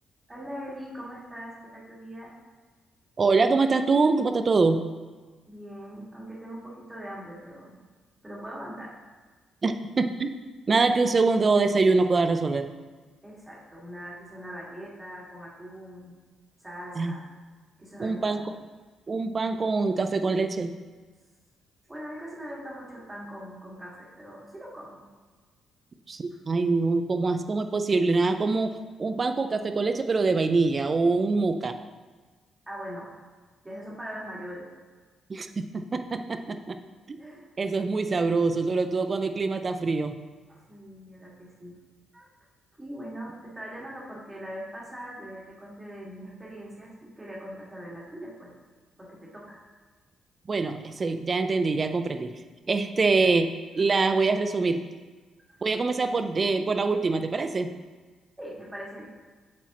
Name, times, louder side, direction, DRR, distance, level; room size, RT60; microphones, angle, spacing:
voice 1, 0.3-2.3 5.5-7.8 8.2-8.9 13.2-16.2 16.6-17.3 17.8-18.5 21.9-25.0 32.7-33.1 33.6-34.7 37.2-37.5 40.5-41.8 42.1-42.3 42.8-48.5 49.0-49.6 55.5-55.6 58.4-59.1, equal, 15° right, -5 dB, 2.1 m, -41 dB
voice 2, 3.2-4.8 9.6-10.3 10.7-12.7 17.0-17.1 18.0-18.6 19.1-20.7 26.1-31.8 35.3-36.8 37.1-37.2 37.6-40.2 50.5-52.3 52.7-54.9 55.6-57.7, right 3 dB, 35° right, 8 dB, 0.5 m, -24 dB
8.3 x 6.2 x 3.0 m, 1.4 s
cardioid pair, 90°, 0 cm